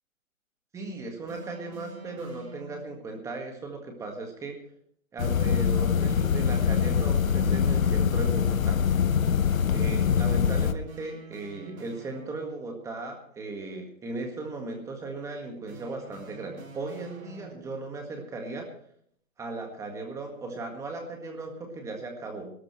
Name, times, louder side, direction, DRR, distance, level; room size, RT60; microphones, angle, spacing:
voice 1, 0.7-4.6 5.1-8.8 9.7-18.7 19.4-22.5, right 3 dB, 10° right, 3 dB, 1.7 m, -37 dB
sound 1, 1.3-3.1 6.1-7.9 10.9-12.8 15.7-17.9, right 4 dB, 90° right, 4.3 m, -47 dB
sound 2, 5.2-10.7, left 7 dB, 80° left, 1.1 m, -24 dB
21.5 x 13.0 x 3.2 m, 0.63 s
hypercardioid pair, 160°, 40 cm